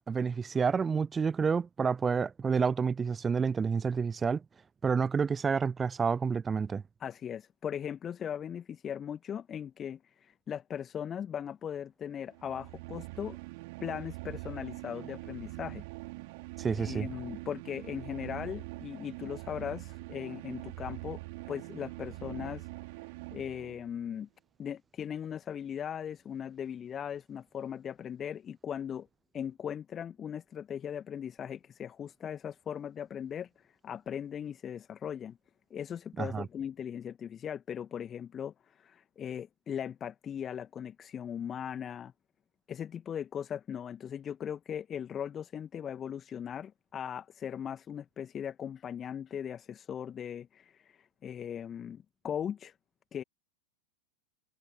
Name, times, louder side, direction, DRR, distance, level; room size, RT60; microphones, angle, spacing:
voice 1, 0.0-4.4 4.8-6.8 16.6-17.1 36.2-36.5, right 5 dB, 15° right, 0.6 m, -29 dB
voice 2, 7.0-13.4 13.8-15.8 16.7-21.2 21.5-22.7 23.3-24.3 24.6-29.1 29.3-35.4 35.7-42.1 42.7-52.7 53.1-53.2, left 8 dB, 25° left, 1.5 m, -39 dB
sound 1, 12.3-24.0, right 25 dB, 50° right, 5.2 m, -43 dB
figure-of-eight pair, 90°, 0 cm